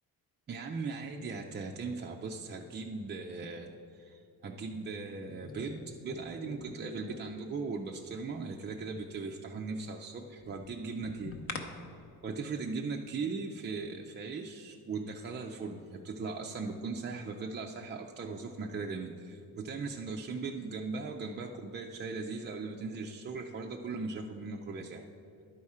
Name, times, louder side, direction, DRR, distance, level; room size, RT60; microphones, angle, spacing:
voice 1, 0.5-11.7 12.2-25.0, right 4 dB, 30° right, 1 dB, 0.4 m, -39 dB
sound 1, 5.2-7.6 10.4-11.6, left 3 dB, 35° left, 0.7 m, -45 dB
11.0 x 4.2 x 4.8 m, 2.7 s
cardioid pair, 115°, 38 cm